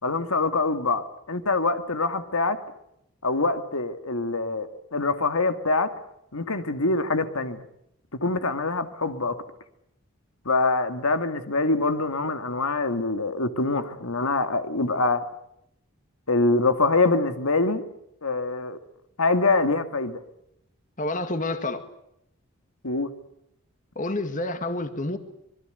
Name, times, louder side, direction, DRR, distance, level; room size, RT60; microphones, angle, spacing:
voice 1, 0.0-2.6 3.2-5.9 6.3-7.6 8.2-9.4 10.5-15.2 16.3-17.8 18.2-18.8 19.2-20.2 22.8-23.1, left 3 dB, 90° left, 2.2 m, -24 dB
voice 2, 21.0-21.9 24.0-25.2, left 2 dB, 35° left, 1.9 m, -28 dB
26.0 x 22.0 x 8.0 m
head